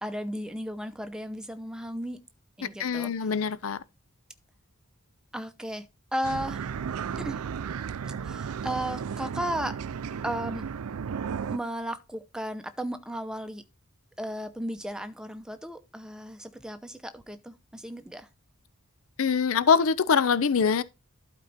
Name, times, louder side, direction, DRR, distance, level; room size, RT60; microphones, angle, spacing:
voice 1, 0.0-2.2 2.6-3.1 5.3-5.9 6.1-6.6 7.2-7.4 8.0-9.8 10.2-10.6 11.5-13.6 14.2-18.3, equal, 5° right, 0.7 m, -35 dB
voice 2, 2.8-3.8 19.2-20.8, left 6 dB, 65° left, 0.5 m, -23 dB
sound 1, 6.2-11.6, right 6 dB, 90° right, 0.4 m, -34 dB
12.0 x 4.5 x 4.1 m
head